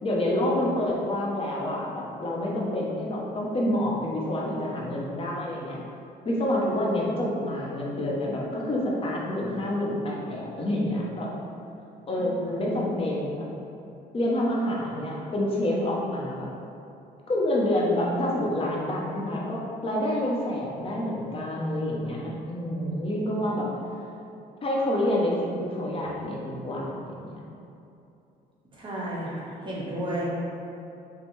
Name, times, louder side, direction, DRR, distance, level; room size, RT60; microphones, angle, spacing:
voice 1, 0.0-5.8 6.2-11.3 12.1-13.5 14.1-16.5 17.3-23.7 24.6-27.3, left 1 dB, 35° left, -3 dB, 0.7 m, -28 dB
voice 2, 28.8-30.3, right 1 dB, 30° right, -6 dB, 1.1 m, -32 dB
5.2 x 2.1 x 3.1 m, 2.8 s
cardioid pair, 110°, 17 cm